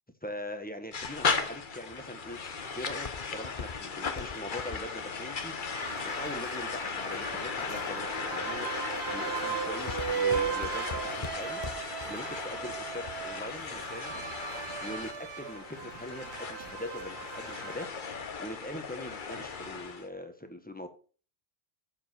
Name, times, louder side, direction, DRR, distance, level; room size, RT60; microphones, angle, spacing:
voice 1, 0.2-2.4 2.7-5.5 6.0-8.7 9.0-11.6 12.0-14.2 14.8-17.9 18.4-20.9, left 1 dB, 10° left, 6 dB, 1.4 m, -42 dB
sound 1, 0.9-20.1, left 5 dB, 50° left, 1.1 m, -36 dB
Walk footsteps, 1.8-6.9 7.5-8.0 8.5-8.8 9.2-12.0 12.4-12.5, left 5 dB, 35° left, 0.8 m, -41 dB
sound 2, 5.7-17.9, right 8 dB, 80° right, 1.0 m, -37 dB
7.5 x 7.1 x 6.0 m, 0.39 s
omnidirectional pair, 1.1 m